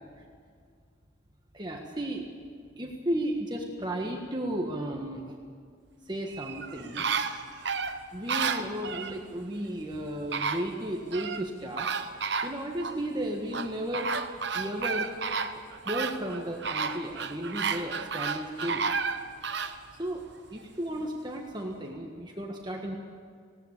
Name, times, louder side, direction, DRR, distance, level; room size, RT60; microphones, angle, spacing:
voice 1, 1.5-2.3 2.7-5.3 6.0-7.1 8.1-11.9 12.4-15.2 15.8-18.9 19.9-20.2 20.5-23.0, right 1 dB, 20° right, 1 dB, 1.5 m, -34 dB
sound 1, 6.3-9.2 9.9-10.0 10.3-11.4 11.8-13.0 13.5-19.8 20.3-20.4, right 5 dB, 60° right, 1.0 m, -32 dB
19.5 x 17.5 x 8.3 m, 2.1 s
head